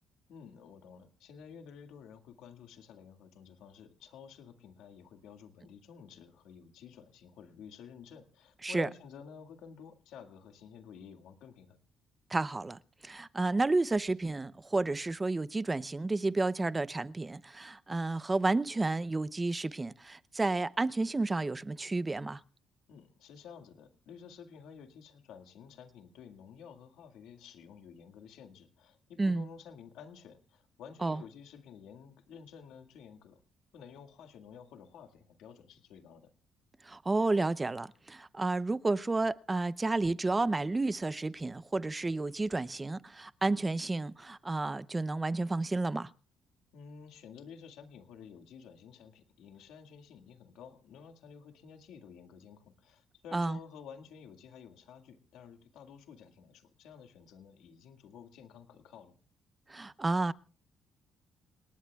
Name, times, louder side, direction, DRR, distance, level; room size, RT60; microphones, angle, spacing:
voice 1, 0.3-11.8 22.9-33.4 33.7-36.3 46.7-59.2, left 7 dB, 85° left, 1.9 m, -52 dB
voice 2, 12.3-22.4 29.2-29.5 31.0-31.2 36.8-46.1 53.3-53.6 59.7-60.3, right 2 dB, 20° right, 0.6 m, -31 dB
28.0 x 19.0 x 2.4 m
cardioid pair, 90°, 0 cm